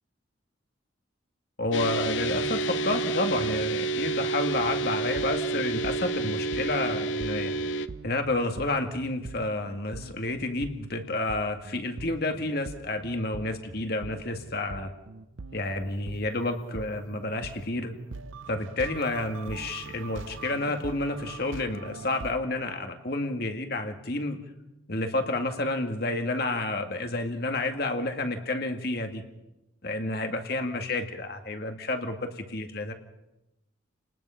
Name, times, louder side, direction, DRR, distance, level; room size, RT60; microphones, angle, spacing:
voice 1, 1.6-7.5 8.0-14.9 15.5-17.9 18.5-24.4 24.9-29.2 29.8-32.9, left 2 dB, 50° left, 5 dB, 1.9 m, -30 dB
sound 1, 1.7-7.9, right 2 dB, 75° left, 0.9 m, -29 dB
sound 2, 5.2-22.3, right 4 dB, 90° right, 0.7 m, -43 dB
30.0 x 19.5 x 5.7 m, 0.92 s
head